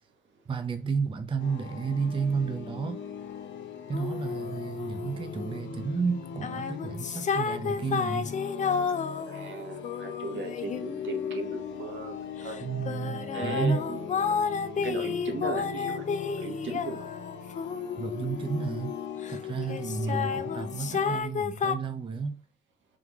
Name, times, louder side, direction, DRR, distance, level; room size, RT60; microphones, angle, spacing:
voice 1, 0.5-3.0 3.9-8.3 12.6-13.8 18.0-19.0 19.3-22.4, right 5 dB, 25° right, 0.5 m, -31 dB
sound 1, 1.4-21.2, left 7 dB, 65° left, 0.9 m, -39 dB
sound 2, 3.9-5.6 6.2-11.9 12.4-19.4 19.7-21.7, left 6 dB, 40° left, 0.5 m, -32 dB
voice 2, 9.3-12.1 12.4-12.7 13.3-14.3 14.8-16.1 16.4-17.1 20.0-20.2, right 3 dB, 75° right, 1.3 m, -37 dB
3.4 x 3.4 x 3.5 m
cardioid pair, 90°, 20 cm